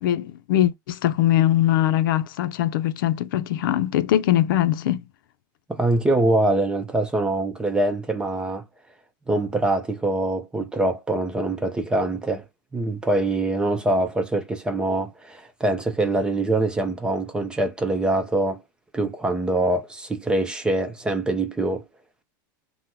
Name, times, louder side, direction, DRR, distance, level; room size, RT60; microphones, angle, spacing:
voice 1, 0.0-5.0, left 12 dB, 80° left, 0.5 m, -21 dB
voice 2, 5.7-8.6 9.3-12.4 12.7-18.6 18.9-21.8, right 2 dB, 10° right, 0.6 m, -24 dB
2.9 x 2.1 x 3.6 m
supercardioid pair, 150°, 11 cm